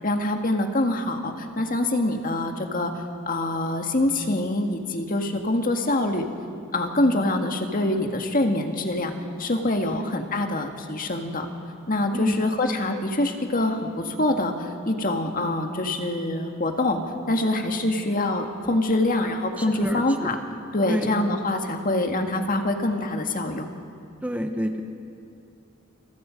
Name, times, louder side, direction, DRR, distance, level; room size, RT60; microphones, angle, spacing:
voice 1, 0.0-2.9 3.3-6.3 6.7-9.1 9.4-11.5 11.9-17.0 17.3-20.4 20.7-23.7, left 2 dB, 40° left, 4 dB, 1.8 m, -25 dB
voice 2, 19.6-20.3 20.9-21.1 24.2-24.8, equal, 5° right, 4 dB, 1.2 m, -27 dB
28.5 x 27.0 x 5.3 m, 2.5 s
head